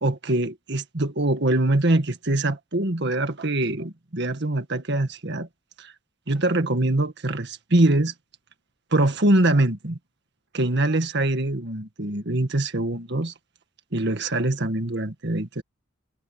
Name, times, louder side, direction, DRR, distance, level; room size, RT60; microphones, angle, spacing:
voice 1, 0.0-5.5 5.8-5.9 6.3-8.1 8.9-10.0 10.5-13.3 13.9-15.6, right 1 dB, 55° right, 1.8 m, -23 dB
head